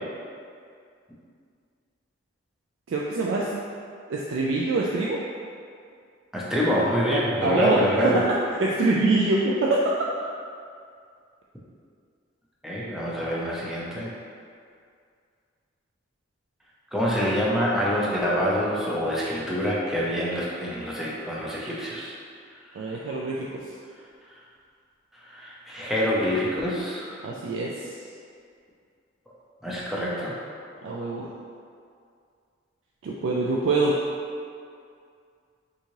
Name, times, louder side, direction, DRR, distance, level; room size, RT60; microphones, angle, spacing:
voice 1, 2.9-3.5 4.1-5.2 7.4-9.8 22.7-23.6 27.2-27.9 30.8-31.3 33.0-34.0, right 2 dB, 70° right, -4 dB, 0.3 m, -24 dB
voice 2, 6.3-8.2 12.6-14.1 16.9-22.1 25.3-27.2 29.6-30.3, equal, ahead, -6 dB, 0.4 m, -26 dB
3.5 x 2.7 x 3.0 m, 2.3 s
head